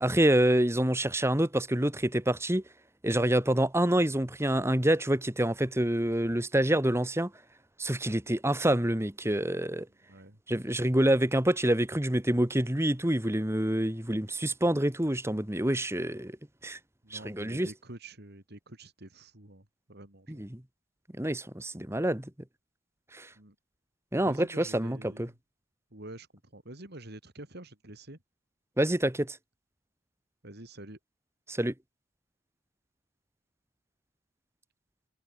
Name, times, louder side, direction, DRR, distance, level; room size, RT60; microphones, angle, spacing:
voice 1, 0.0-2.6 3.0-7.3 7.8-9.9 10.5-16.4 16.6-16.8 17.1-17.7 20.3-20.6 21.2-22.3 23.1-23.3 24.1-25.3 28.8-29.4 31.5-31.7, right 1 dB, 10° right, 1.4 m, -27 dB
voice 2, 17.0-20.4 23.4-23.6 24.2-25.3 25.9-26.3 26.5-28.2 30.4-31.0, right 1 dB, 50° right, 3.5 m, -47 dB
head